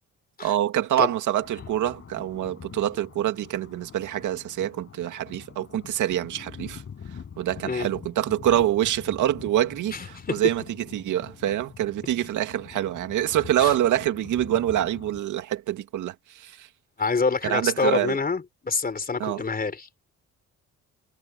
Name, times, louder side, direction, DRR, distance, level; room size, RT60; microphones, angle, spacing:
voice 1, 0.4-6.8 7.4-16.7 17.4-18.2 19.2-19.4, right 12 dB, 80° right, 2.3 m, -26 dB
sound 1, 1.4-15.2, left 7 dB, 50° left, 6.6 m, -44 dB
voice 2, 9.9-10.4 13.6-13.7 17.0-20.1, left 4 dB, 30° left, 4.3 m, -27 dB
cardioid pair, 90°, 30 cm